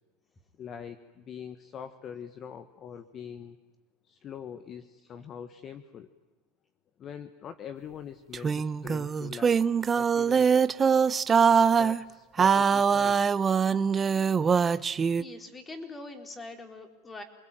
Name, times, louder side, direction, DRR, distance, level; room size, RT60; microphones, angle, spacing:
voice 1, 0.6-3.6 4.1-6.1 7.0-9.7 9.9-10.5 11.7-13.2, left 8 dB, 35° left, 10 dB, 1.4 m, -43 dB
sound 1, 8.3-12.0 12.4-15.2, right 6 dB, 20° right, 0.8 m, -23 dB
voice 2, 14.8-17.2, left 2 dB, 15° left, 5 dB, 4.0 m, -43 dB
28.5 x 21.0 x 9.2 m, 1.2 s
supercardioid pair, 135°, 0 cm